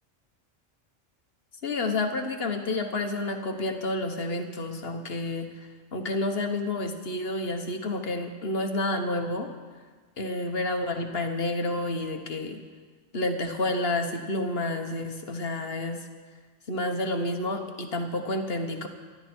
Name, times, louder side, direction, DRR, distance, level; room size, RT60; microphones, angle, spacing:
voice 1, 1.6-5.5 5.9-9.5 10.2-12.6 13.1-16.0 16.7-18.9, left 2 dB, 50° left, 5 dB, 1.5 m, -29 dB
24.5 x 11.5 x 4.5 m, 1.4 s
omnidirectional pair, 1.3 m